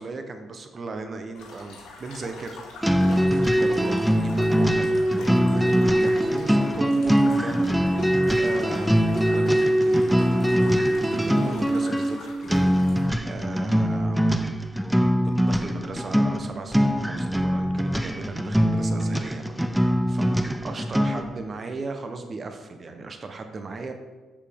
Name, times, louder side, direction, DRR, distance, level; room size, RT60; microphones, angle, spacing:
voice 1, 0.0-2.6 3.3-7.6 8.4-14.4 15.2-23.9, right 3 dB, 40° right, 6 dB, 0.7 m, -37 dB
sound 1, 1.3-13.1, left 3 dB, 90° left, 1.7 m, -44 dB
sound 2, 2.8-21.4, equal, 5° right, 0.4 m, -22 dB
7.1 x 6.9 x 3.5 m, 1.3 s
cardioid pair, 90°, 0 cm